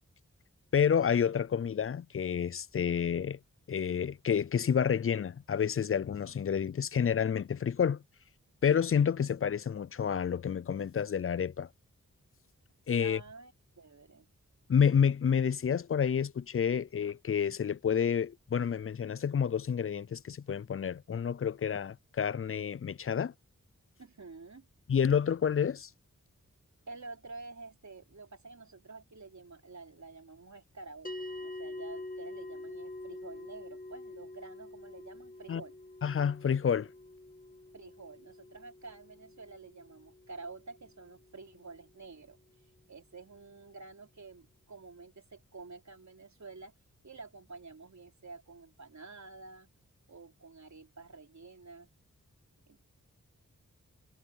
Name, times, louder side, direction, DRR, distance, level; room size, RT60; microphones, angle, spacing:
voice 1, 0.7-3.4 3.7-8.0 8.6-11.7 12.9-13.2 14.7-23.3 24.9-25.9 35.5-35.6 36.0-36.9, left 7 dB, 45° left, 0.5 m, -29 dB
voice 2, 13.0-14.3 24.0-24.7 26.9-31.1 31.4-35.7 37.7-42.4 42.9-46.7 47.0-49.7 50.1-51.9 52.7-53.0, right 3 dB, 60° right, 3.9 m, -49 dB
sound 1, 31.0-41.6, left 2 dB, 25° left, 1.9 m, -46 dB
cardioid pair, 45°, 32 cm